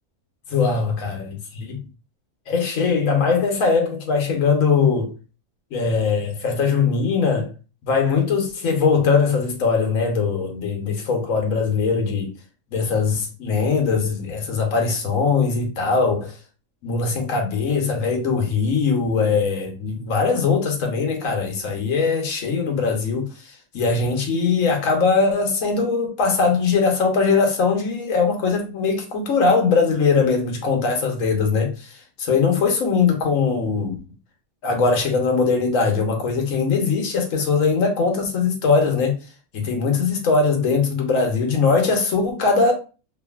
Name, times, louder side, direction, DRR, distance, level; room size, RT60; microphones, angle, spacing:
voice 1, 0.5-1.8 2.5-5.1 5.7-7.5 7.8-12.3 12.7-16.4 16.8-34.0 34.6-39.1 39.5-42.7, left 4 dB, 65° left, 1.1 m, -21 dB
2.8 x 2.6 x 2.2 m
omnidirectional pair, 1.5 m